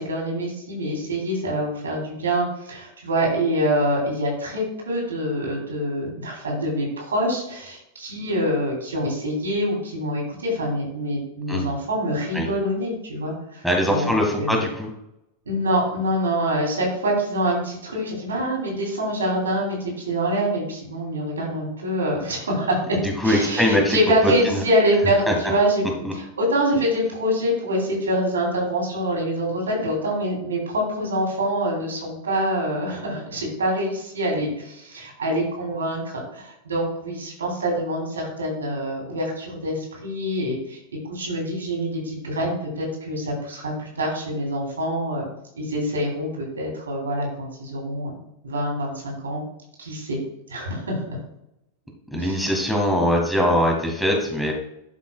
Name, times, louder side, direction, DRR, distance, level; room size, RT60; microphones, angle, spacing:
voice 1, 0.0-14.1 14.4-14.6 15.4-40.8 41.1-45.3 45.5-49.4 49.8-50.2 50.5-51.0 52.1-52.4, equal, 70° right, -1 dB, 3.2 m, -25 dB
voice 2, 13.6-14.9 23.0-24.0 24.2-24.6 25.3-25.4 26.0-26.1 52.1-54.5, equal, ahead, 0 dB, 1.8 m, -22 dB
12.0 x 5.9 x 2.3 m, 0.82 s
figure-of-eight pair, 90°, 0 cm